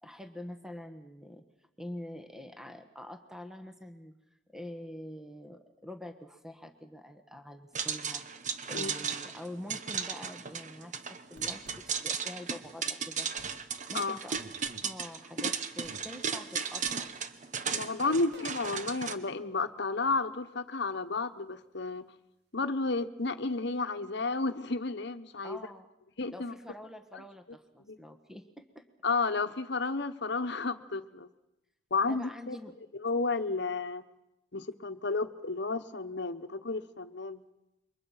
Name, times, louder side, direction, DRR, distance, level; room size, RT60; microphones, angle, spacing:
voice 1, 0.0-1.4 1.8-4.2 4.5-8.2 8.7-13.3 13.9-14.4 14.8-17.2 18.0-18.4 25.4-25.9 26.3-28.8 32.1-32.7, left 1 dB, ahead, 7 dB, 1.3 m, -46 dB
sound 1, 7.7-19.1, right 6 dB, 40° right, 1.0 m, -35 dB
sound 2, 11.4-11.8 13.4-13.6 14.4-14.9 15.8-16.0 16.9-17.1 18.0-18.8, right 1 dB, 55° right, 2.3 m, -49 dB
voice 2, 17.7-22.1 22.5-25.6 26.2-26.5 27.9-28.0 29.0-31.3 31.9-32.6 32.9-34.0 34.5-37.4, left 3 dB, 60° left, 9 dB, 1.2 m, -32 dB
27.5 x 23.5 x 5.8 m, 0.91 s
head